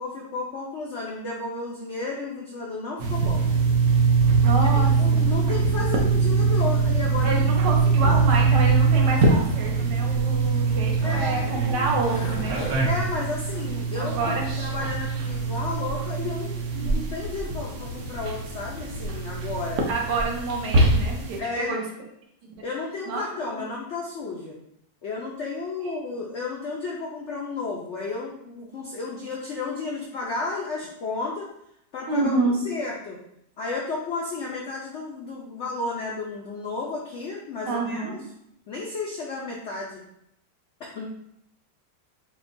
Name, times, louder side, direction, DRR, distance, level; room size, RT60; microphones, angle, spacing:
voice 1, 0.0-3.5 4.5-7.4 8.0-8.3 11.0-11.4 12.8-16.5 16.8-19.8 21.4-21.8 22.6-24.6 25.0-31.5 31.9-33.2 33.6-38.2 38.7-40.0 40.8-41.0, left 3 dB, 80° left, -3 dB, 0.6 m, -32 dB
sound 1, 3.0-21.4, right 4 dB, 65° right, 1.0 m, -23 dB
voice 2, 4.4-5.3 7.2-12.6 14.0-14.5 16.7-17.1 19.9-21.8 22.4-22.5 23.1-23.6 32.1-32.6 37.7-38.2, right 3 dB, 85° right, -1 dB, 1.5 m, -28 dB
Skateboard, 8.7-15.8, equal, 40° left, 0.6 m, -41 dB
5.5 x 2.2 x 2.6 m, 0.77 s
omnidirectional pair, 1.9 m